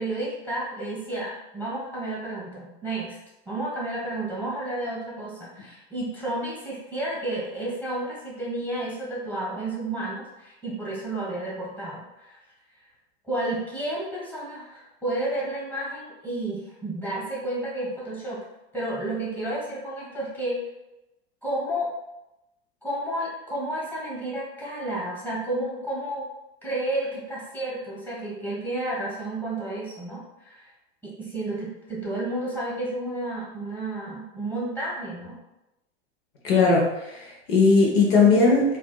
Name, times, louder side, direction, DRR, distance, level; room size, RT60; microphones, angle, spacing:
voice 1, 0.0-3.1 3.4-12.4 13.2-18.4 18.7-20.6 21.4-21.9 22.8-26.3 26.6-30.7 31.0-35.3, right 1 dB, 5° left, -5 dB, 1.5 m, -31 dB
voice 2, 36.4-38.8, left 4 dB, 65° left, -2 dB, 1.1 m, -19 dB
4.2 x 2.6 x 2.3 m, 0.93 s
hypercardioid pair, 110°, 32 cm